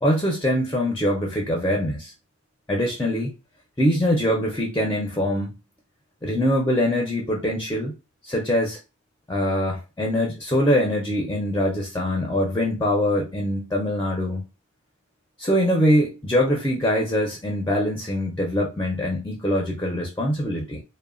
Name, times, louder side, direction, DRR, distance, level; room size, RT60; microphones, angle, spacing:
voice 1, 0.0-2.1 2.7-3.3 3.8-5.5 6.2-8.0 8.2-8.8 9.3-14.4 15.4-20.8, equal, 15° left, 0.5 m, -23 dB
3.0 x 2.1 x 2.4 m
head